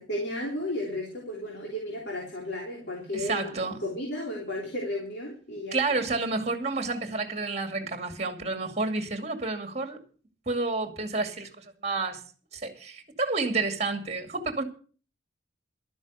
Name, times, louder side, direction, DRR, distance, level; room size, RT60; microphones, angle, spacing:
voice 1, 0.0-6.0, left 1 dB, 60° left, 3.4 m, -34 dB
voice 2, 3.1-3.8 5.7-10.0 10.5-12.2 12.5-14.6, right 3 dB, 35° right, 2.3 m, -30 dB
13.0 x 9.4 x 6.6 m
head